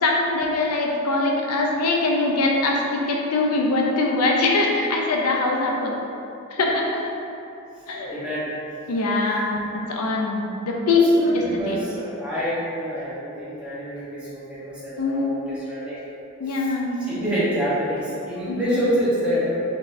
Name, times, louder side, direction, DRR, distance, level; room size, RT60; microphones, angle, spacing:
voice 1, 0.0-6.0 6.5-7.2 7.9-8.1 8.9-11.8 15.0-15.4 16.4-17.1 18.5-18.8, left 2 dB, 85° left, 0 dB, 0.5 m, -22 dB
voice 2, 8.0-8.8 11.1-16.1 16.5-16.7 17.0-19.6, equal, 5° right, -11 dB, 0.9 m, -27 dB
4.1 x 3.4 x 2.6 m, 2.8 s
head